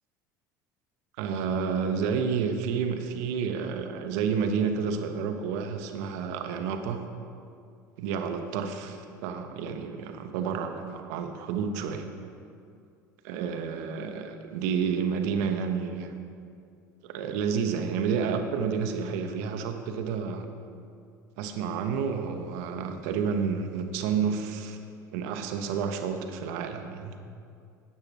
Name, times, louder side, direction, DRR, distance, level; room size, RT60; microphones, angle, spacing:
voice 1, 1.2-7.0 8.0-12.1 13.2-16.1 17.0-20.5 21.4-24.8 25.1-27.1, right 6 dB, 55° right, 7 dB, 0.8 m, -30 dB
12.5 x 8.8 x 3.0 m, 2.4 s
figure-of-eight pair, 65°, 10 cm